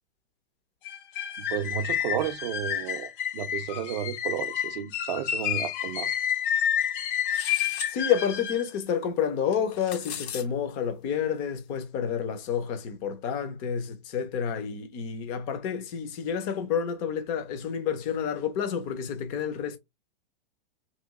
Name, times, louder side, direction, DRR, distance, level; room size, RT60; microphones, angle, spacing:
sound 1, 0.9-8.7, left 9 dB, 55° left, 0.7 m, -30 dB
voice 1, 1.4-6.1, right 10 dB, 45° right, 0.5 m, -32 dB
sound 2, 7.3-7.9 9.5-10.4, left 7 dB, 85° left, 0.9 m, -37 dB
voice 2, 7.9-19.8, left 8 dB, 20° left, 0.4 m, -29 dB
3.0 x 2.5 x 3.5 m
supercardioid pair, 165°, 31 cm